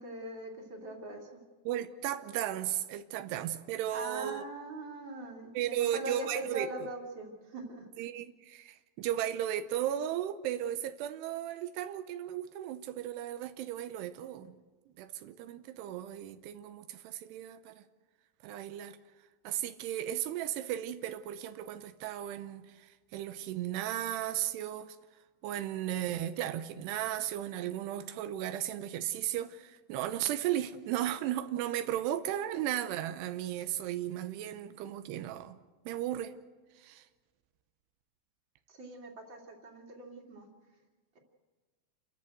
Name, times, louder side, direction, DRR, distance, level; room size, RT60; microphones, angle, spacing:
voice 1, 0.0-1.4 3.9-7.9 38.7-40.5, right 2 dB, 30° right, 2.9 m, -42 dB
voice 2, 1.7-4.4 5.5-6.9 8.0-14.6 15.0-17.8 18.4-19.0 19.4-25.0 25.4-35.6 35.9-36.3 36.8-37.0, right 12 dB, 85° right, 2.9 m, -35 dB
29.0 x 13.5 x 8.0 m
omnidirectional pair, 4.6 m